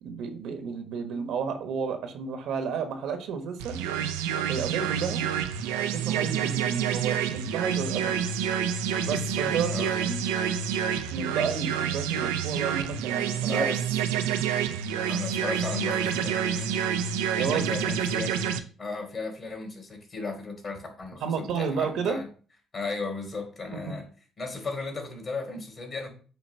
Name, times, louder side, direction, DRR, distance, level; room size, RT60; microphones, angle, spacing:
voice 1, 0.0-3.8 4.5-5.2 5.9-8.2 9.0-10.2 11.1-13.7 17.3-17.7 21.2-22.2 23.7-24.0, right 6 dB, 70° right, 7 dB, 1.2 m, -31 dB
sound 1, 3.6-18.6, right 8 dB, 90° right, 0.6 m, -28 dB
voice 2, 13.3-13.8 15.1-16.8 17.4-18.4 18.8-22.3 22.7-24.1 24.4-26.1, left 3 dB, 45° left, 3 dB, 3.0 m, -35 dB
7.8 x 3.0 x 5.7 m, 0.40 s
hypercardioid pair, 60°, 0 cm